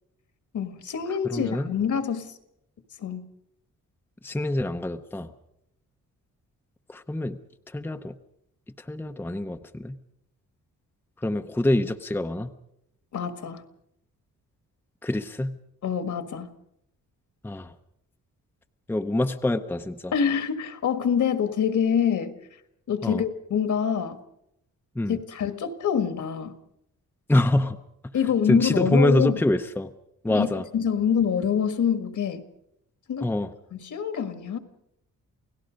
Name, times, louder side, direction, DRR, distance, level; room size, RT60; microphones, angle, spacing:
voice 1, 0.5-2.4 3.0-3.3 13.1-13.6 15.8-16.5 20.1-22.3 22.9-24.2 25.1-26.5 28.1-29.4 30.3-32.4 33.1-33.3 33.7-34.6, left 7 dB, 65° left, 9 dB, 1.8 m, -26 dB
voice 2, 1.2-1.7 4.2-5.3 6.9-7.4 7.7-8.2 8.8-10.0 11.2-12.5 15.0-15.6 17.4-17.7 18.9-20.1 23.0-23.2 24.9-25.2 27.3-27.8 28.5-29.9 30.2-30.6 33.2-33.5, left 1 dB, 5° left, 6 dB, 0.7 m, -25 dB
29.0 x 17.5 x 5.2 m, 0.79 s
wide cardioid pair, 135°, 32 cm